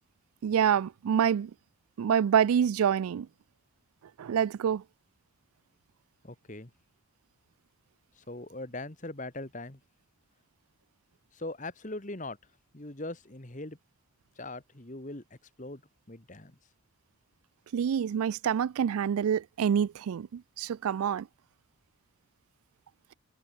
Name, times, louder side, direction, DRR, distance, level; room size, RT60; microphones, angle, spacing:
voice 1, 0.4-1.5 2.0-3.3 4.2-4.8 17.7-21.3, right 8 dB, 85° right, 0.3 m, -27 dB
voice 2, 6.2-6.7 8.3-9.8 11.3-12.4 12.7-13.8 14.4-15.2 15.6-15.8 16.1-16.6, left 2 dB, 35° left, 1.8 m, -40 dB
head